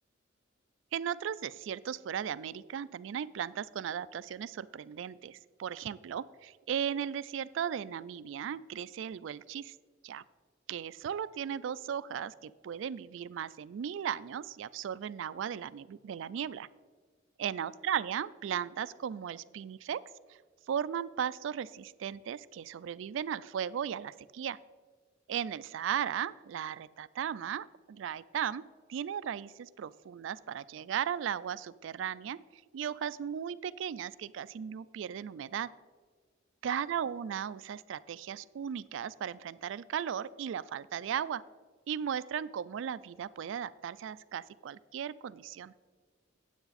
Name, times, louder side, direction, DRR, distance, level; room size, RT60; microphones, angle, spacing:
voice 1, 0.9-9.7 10.0-10.2 10.7-16.7 17.4-20.0 20.7-24.6 25.3-28.6 28.9-35.7 36.6-41.4 41.9-45.7, right 8 dB, 70° right, 17 dB, 0.3 m, -36 dB
9.4 x 7.9 x 4.1 m, 1.5 s
head